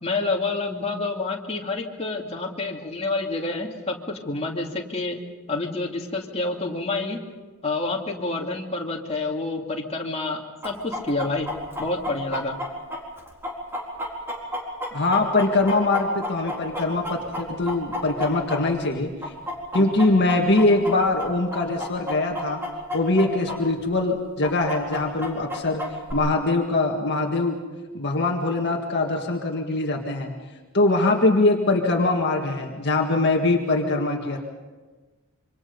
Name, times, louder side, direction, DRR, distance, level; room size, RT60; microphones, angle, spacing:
voice 1, 0.0-5.2 5.5-7.2 7.6-11.5 11.8-12.6 19.8-19.9, left 3 dB, 30° left, -1 dB, 2.5 m, -28 dB
Chicken rooster, 10.6-18.9 19.2-23.6 23.8-23.9 24.4-26.1, left 1 dB, 10° right, 4.1 m, -31 dB
voice 2, 14.9-19.3 19.7-22.6 22.9-25.8 26.1-27.6 27.9-30.3 30.7-34.4, left 2 dB, 50° left, 1 dB, 1.9 m, -22 dB
27.0 x 25.0 x 5.4 m, 1.3 s
head